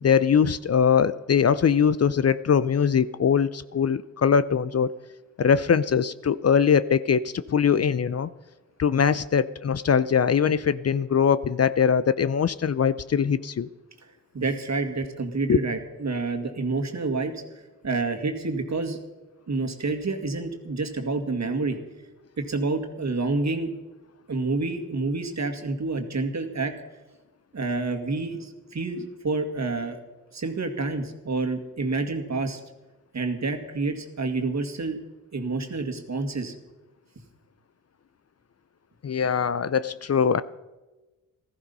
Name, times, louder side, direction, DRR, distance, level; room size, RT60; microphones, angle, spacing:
voice 1, 0.0-5.0 5.4-8.3 8.8-13.7 15.5-15.6 39.0-40.4, left 7 dB, 45° left, 16 dB, 0.6 m, -22 dB
voice 2, 14.3-19.0 19.5-21.8 22.4-23.7 24.3-26.7 27.5-30.0 30.3-32.6 33.1-35.0 35.3-36.5, right 3 dB, 50° right, 6 dB, 2.1 m, -28 dB
15.5 x 13.5 x 5.4 m, 1.1 s
cardioid pair, 60°, 34 cm